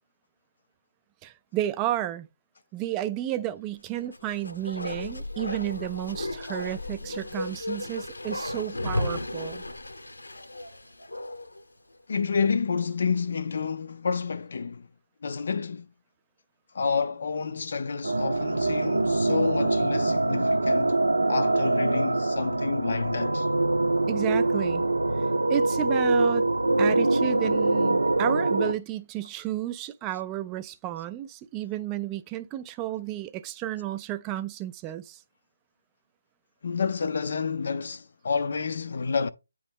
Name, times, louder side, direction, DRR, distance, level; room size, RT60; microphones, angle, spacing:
voice 1, 1.2-2.3 2.7-9.6 24.1-24.8 25.2-26.5 26.8-35.2, right 13 dB, 15° right, 0.3 m, -32 dB
Bark, 4.0-11.6 11.9-12.0, left 1 dB, 85° left, 0.8 m, -34 dB
voice 2, 12.1-14.9 15.2-15.9 16.7-21.0 21.3-23.5 36.6-39.3, left 5 dB, 50° left, 0.4 m, -29 dB
sound 1, 18.0-28.7, right 2 dB, 80° right, 0.5 m, -24 dB
8.8 x 3.1 x 3.5 m
figure-of-eight pair, 155°, 0 cm